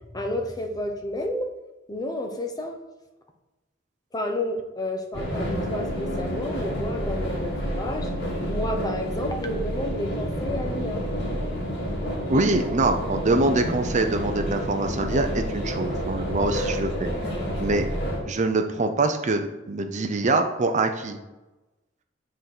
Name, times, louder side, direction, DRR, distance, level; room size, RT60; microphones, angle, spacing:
voice 1, 0.1-1.5 1.9-2.8 4.1-8.1 8.5-11.0, left 1 dB, 20° left, 4 dB, 0.9 m, -31 dB
sound 1, 5.1-18.2, equal, 60° left, 2.2 m, -29 dB
voice 2, 12.3-17.1 17.6-17.8 18.3-21.2, right 2 dB, 40° right, 6 dB, 0.6 m, -24 dB
7.8 x 4.0 x 6.0 m, 1.1 s
head